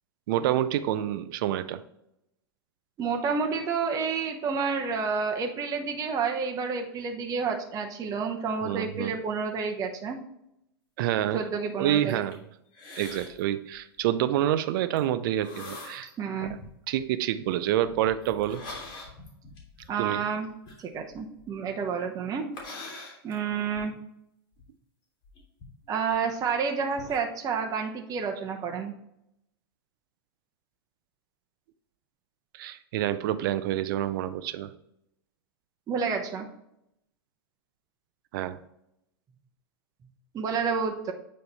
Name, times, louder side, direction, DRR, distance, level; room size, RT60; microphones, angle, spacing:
voice 1, 0.3-1.8 8.6-9.1 11.0-11.4 11.8-12.4 13.0-16.1 16.5-16.6 16.9-18.6 20.0-20.2 32.5-34.7 38.3-38.6, right 12 dB, 60° right, 12 dB, 0.5 m, -27 dB
voice 2, 3.0-10.2 11.3-12.2 16.2-16.6 19.9-20.5 20.8-22.5 23.2-23.9 25.9-28.9 35.9-36.5 40.3-41.1, right 5 dB, 25° right, 2 dB, 0.9 m, -29 dB
sound 1, 12.0-12.4 12.7-13.4 13.7-14.0 15.0-15.1 15.4-16.1 16.5-17.0 17.8-21.7 22.5-23.9 24.6-24.7 25.2-26.5 26.8-27.2, left 3 dB, 35° left, 2.3 m, -44 dB
8.6 x 3.2 x 4.1 m, 0.79 s
hypercardioid pair, 105°, 13 cm